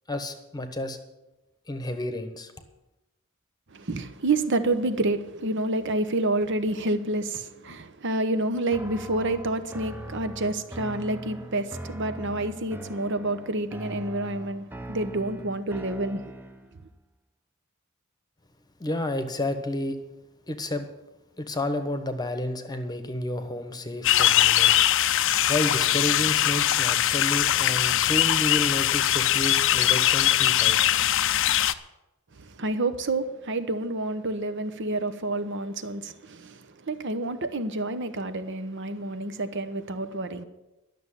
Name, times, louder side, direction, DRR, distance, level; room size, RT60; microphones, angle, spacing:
voice 1, 0.1-1.0 1.7-2.5 18.8-20.0 20.5-20.9 21.4-24.9 25.1-31.0, left 1 dB, 20° left, 1.1 m, -31 dB
voice 2, 3.7-16.2 32.3-40.4, right 2 dB, 55° right, 1.0 m, -29 dB
sound 1, 8.7-16.8, right 1 dB, 10° right, 0.7 m, -41 dB
sound 2, 24.0-31.7, left 12 dB, 60° left, 0.5 m, -21 dB
12.0 x 6.8 x 9.9 m
head